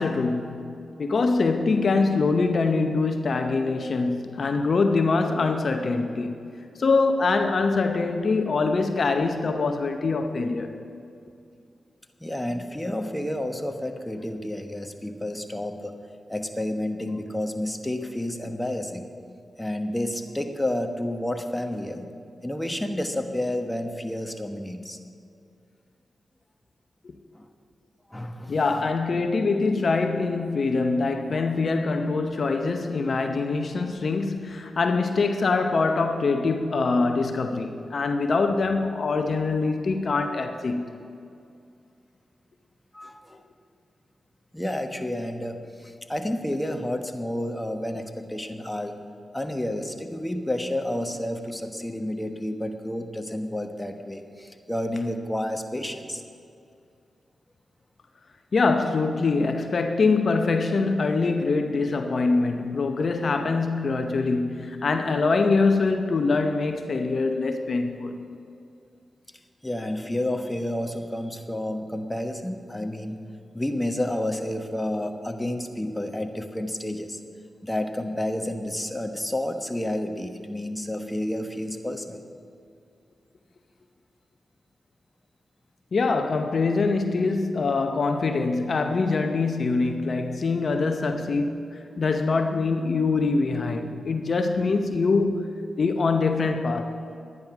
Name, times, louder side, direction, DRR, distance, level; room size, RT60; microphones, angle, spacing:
voice 1, 0.0-6.4 6.8-10.8 27.0-27.1 28.5-40.9 58.5-68.2 85.9-91.6 92.0-95.5 95.8-97.0, left 3 dB, 60° left, 0.7 m, -24 dB
voice 2, 12.2-15.9 16.3-19.1 19.6-22.1 22.4-25.0 27.3-27.5 28.1-28.8 42.9-43.4 44.5-49.0 49.3-56.2 69.6-73.2 73.5-77.2 77.6-82.2, left 1 dB, 10° left, 1.2 m, -30 dB
11.0 x 9.5 x 5.9 m
supercardioid pair, 40°, 0 cm